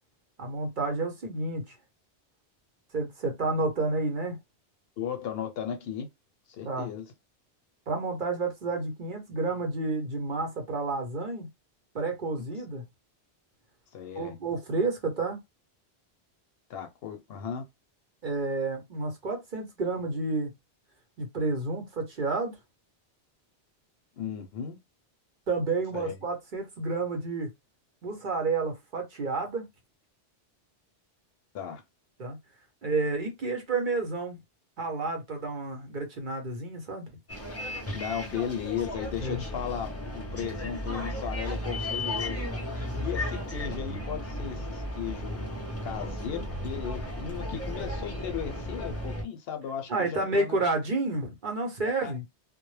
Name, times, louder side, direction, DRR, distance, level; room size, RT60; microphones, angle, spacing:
voice 1, 0.4-1.7 2.9-4.4 6.6-6.9 7.9-11.5 11.9-12.8 14.2-15.4 18.2-20.5 21.2-22.6 25.5-27.5 28.0-29.7 32.2-32.4 32.8-34.4 34.8-37.1 39.2-39.4 49.9-52.2, right 3 dB, 55° right, 0.8 m, -30 dB
voice 2, 5.0-6.1 6.5-7.0 13.9-14.3 16.7-17.7 24.2-24.8 25.9-26.2 31.5-31.8 37.9-45.4 45.8-50.6 52.0-52.2, left 8 dB, 70° left, 0.8 m, -36 dB
Bus, 37.3-49.2, left 1 dB, 20° left, 0.4 m, -34 dB
2.1 x 2.0 x 3.1 m
omnidirectional pair, 1.1 m